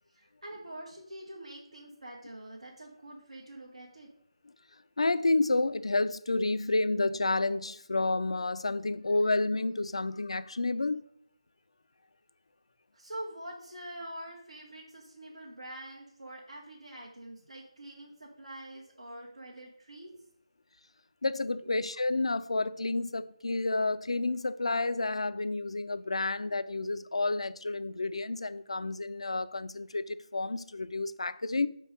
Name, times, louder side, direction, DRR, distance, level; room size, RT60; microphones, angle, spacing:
voice 1, 0.1-4.1 12.9-20.1 21.6-21.8, right 1 dB, 85° right, 1.2 m, -45 dB
voice 2, 5.0-11.0 21.2-31.7, left 2 dB, 70° left, 0.3 m, -30 dB
5.3 x 3.7 x 5.1 m
figure-of-eight pair, 155°, 3 cm